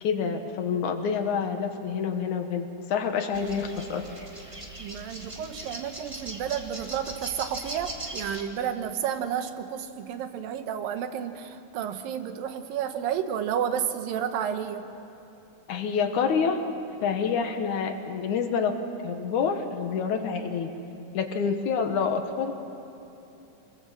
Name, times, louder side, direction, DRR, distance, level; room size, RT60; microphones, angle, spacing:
voice 1, 0.0-4.1 15.7-16.7 17.0-18.8 19.0-20.7 21.1-22.5, left 6 dB, 70° left, 6 dB, 2.5 m, -27 dB
sound 1, 3.3-8.4, right 2 dB, 20° right, 0.8 m, -40 dB
voice 2, 4.8-14.9, right 9 dB, 90° right, 8 dB, 2.8 m, -31 dB
25.0 x 21.5 x 7.5 m, 2.9 s
omnidirectional pair, 3.9 m